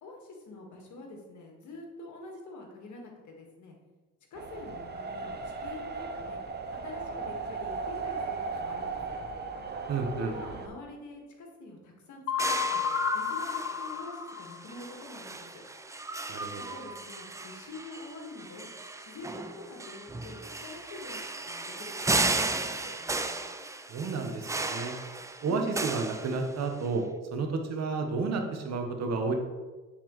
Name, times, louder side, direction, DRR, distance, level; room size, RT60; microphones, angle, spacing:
voice 1, 0.0-3.8 4.3-6.4 6.8-9.2 10.1-12.8 13.1-15.6 16.6-18.7 19.0-23.0 25.4-25.7, left 2 dB, 70° left, 1 dB, 1.6 m, -46 dB
sound 1, 4.3-10.7, right 4 dB, 35° right, 0.7 m, -37 dB
voice 2, 9.9-10.4 16.3-16.6 23.9-24.9 25.4-27.1 27.3-29.3, right 4 dB, 60° right, 4 dB, 1.0 m, -31 dB
sound 2, 12.3-14.9, left 8 dB, 55° left, 0.5 m, -31 dB
sound 3, 12.4-26.9, right 3 dB, 10° right, 0.3 m, -35 dB
8.8 x 4.3 x 3.0 m, 1.2 s
cardioid pair, 90°, 30 cm